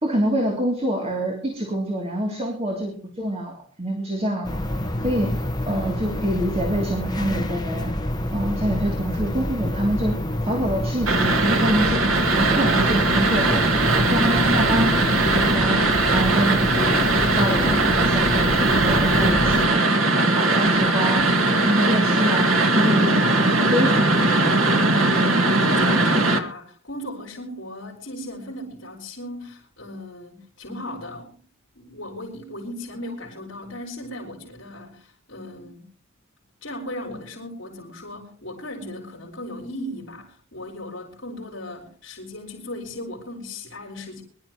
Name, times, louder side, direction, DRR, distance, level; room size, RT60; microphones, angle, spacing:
voice 1, 0.0-4.6 5.0-5.3 5.7-7.9 8.3-10.2 10.4-12.0 12.3-13.8 14.1-14.9 15.2-15.8 16.1-17.0 17.3-19.8 20.2-21.2 21.5-23.3 23.7-24.6, equal, 30° right, 3.0 m, -26 dB
sound 1, 4.4-19.7, left 1 dB, 20° left, 1.3 m, -27 dB
sound 2, 11.1-26.4, right 2 dB, 75° right, 1.9 m, -20 dB
voice 2, 25.1-31.3 31.7-35.9 36.6-44.2, left 1 dB, 60° left, 4.4 m, -37 dB
24.0 x 12.5 x 3.1 m
head